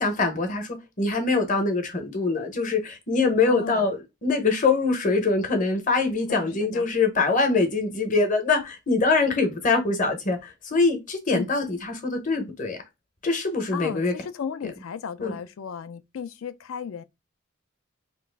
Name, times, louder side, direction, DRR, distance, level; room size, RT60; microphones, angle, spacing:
voice 1, 0.0-12.8 13.2-14.1 15.2-15.4, left 3 dB, 40° left, 0.8 m, -24 dB
voice 2, 3.5-3.8 6.3-6.9 11.3-11.5 13.7-17.0, left 7 dB, 85° left, 0.4 m, -35 dB
2.9 x 2.4 x 3.3 m
head